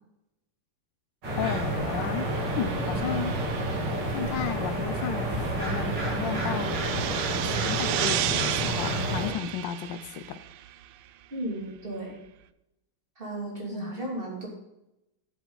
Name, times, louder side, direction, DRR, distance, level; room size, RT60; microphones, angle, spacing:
sound 1, 1.2-9.3, right 1 dB, 50° right, 3.8 m, -30 dB
sound 2, 1.3-10.9, right 12 dB, 85° right, 1.5 m, -34 dB
voice 1, 1.4-2.3 2.6-3.4 4.1-6.8 7.4-10.4 13.7-13.9, left 9 dB, 70° left, 10 dB, 1.3 m, -33 dB
voice 2, 11.3-12.2 13.2-14.5, right 1 dB, 25° right, -2 dB, 2.9 m, -34 dB
12.0 x 7.6 x 3.9 m, 0.87 s
omnidirectional pair, 2.4 m